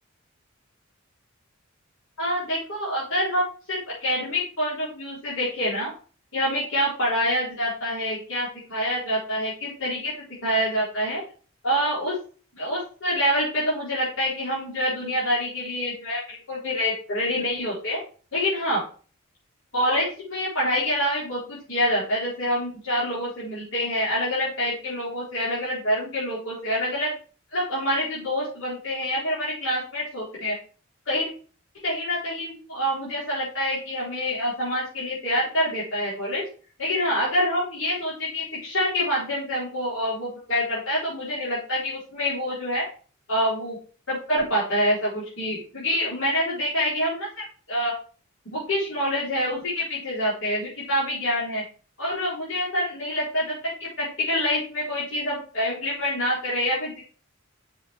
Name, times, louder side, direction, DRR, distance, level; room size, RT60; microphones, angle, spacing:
voice 1, 2.2-5.9 6.3-11.2 11.6-12.2 12.5-18.0 18.3-18.8 19.7-27.1 27.5-30.6 31.1-31.3 31.8-36.4 36.8-42.9 43.3-43.8 44.1-47.9 48.5-51.6 52.0-57.0, equal, 65° left, -8 dB, 4.3 m, -26 dB
7.0 x 5.8 x 4.5 m, 0.39 s
head